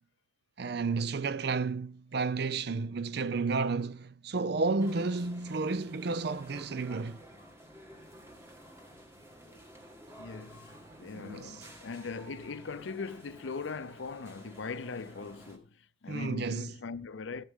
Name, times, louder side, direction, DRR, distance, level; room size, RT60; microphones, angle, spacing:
voice 1, 0.6-7.2 11.1-11.5 16.1-16.7, right 4 dB, 55° right, 0.5 m, -32 dB
sound 1, 4.8-15.6, equal, 15° right, 1.7 m, -52 dB
voice 2, 10.2-17.4, left 4 dB, 70° left, 0.6 m, -40 dB
14.5 x 7.4 x 3.7 m
head